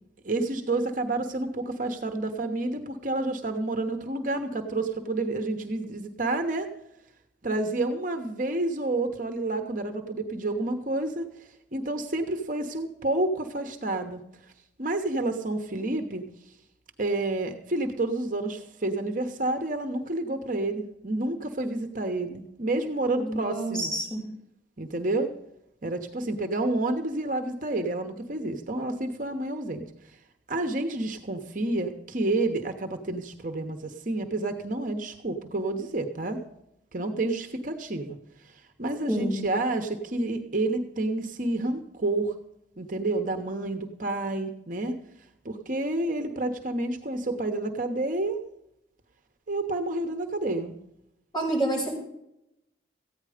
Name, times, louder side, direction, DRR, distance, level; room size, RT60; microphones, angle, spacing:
voice 1, 0.2-6.7 7.4-14.2 14.8-16.2 17.0-23.9 24.8-25.3 25.8-29.8 30.5-36.4 36.9-38.2 38.4-42.3 42.8-45.0 45.4-48.4 49.5-50.7, right 2 dB, 45° right, 5 dB, 1.0 m, -29 dB
voice 2, 23.2-24.2 39.1-39.5 51.3-51.9, right 1 dB, 20° left, -3 dB, 5.8 m, -28 dB
14.5 x 9.7 x 5.0 m, 0.83 s
head